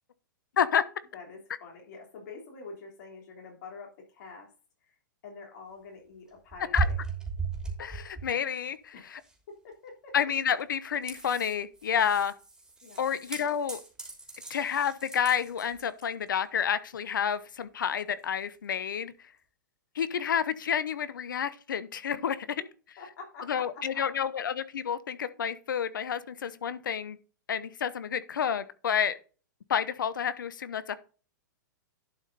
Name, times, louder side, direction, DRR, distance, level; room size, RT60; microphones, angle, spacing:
voice 1, 1.1-4.5 4.8-5.0 5.2-7.0 8.9-9.1 9.5-10.2 12.8-13.0 23.0-24.1, left 4 dB, 60° left, 3.3 m, -46 dB
sound 1, 6.5-8.6 9.2-9.3 10.6-10.7 10.9-16.3 18.2-18.3, right 4 dB, 5° right, 3.1 m, -36 dB
voice 2, 7.8-9.2 10.1-12.3 13.0-13.8 14.5-19.1 19.9-22.4 23.5-27.2 27.5-29.1 29.7-31.0, left 8 dB, 75° left, 1.0 m, -29 dB
11.5 x 5.3 x 4.1 m
hypercardioid pair, 115°, 11 cm